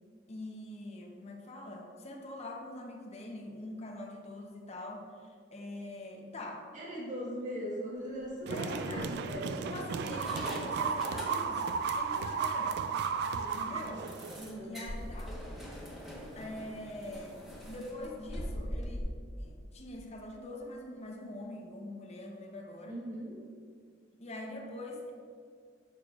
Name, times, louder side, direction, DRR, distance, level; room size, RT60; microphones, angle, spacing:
voice 1, 0.3-6.7 8.5-9.1 9.6-12.8 13.5-14.0 14.6-15.4 16.4-17.4 17.7-23.0 24.2-25.1, left 1 dB, 35° left, 0 dB, 0.7 m, -44 dB
voice 2, 6.7-9.7 13.2-13.8 14.3-14.8 22.8-23.4, equal, 40° right, -6 dB, 1.3 m, -40 dB
sound 1, 8.1-8.3 9.0-9.6 10.1-11.8 12.1-12.2 12.6-12.7 13.1-13.2 14.1-19.0, equal, ahead, 1.0 m, -43 dB
sound 2, 8.5-14.5, right 5 dB, 60° right, 0.3 m, -34 dB
6.6 x 6.6 x 2.4 m, 2.1 s
head